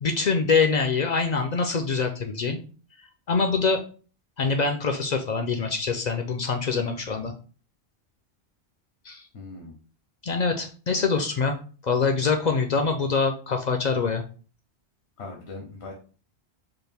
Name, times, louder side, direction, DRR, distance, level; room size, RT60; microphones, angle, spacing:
voice 1, 0.0-2.6 3.3-3.8 4.4-7.3 9.1-9.2 10.2-11.5 11.8-14.2, left 4 dB, 55° left, 4 dB, 0.5 m, -24 dB
voice 2, 9.3-9.7 15.2-15.9, left 3 dB, 80° left, 1 dB, 1.1 m, -40 dB
4.2 x 2.4 x 3.3 m, 0.38 s
omnidirectional pair, 1.1 m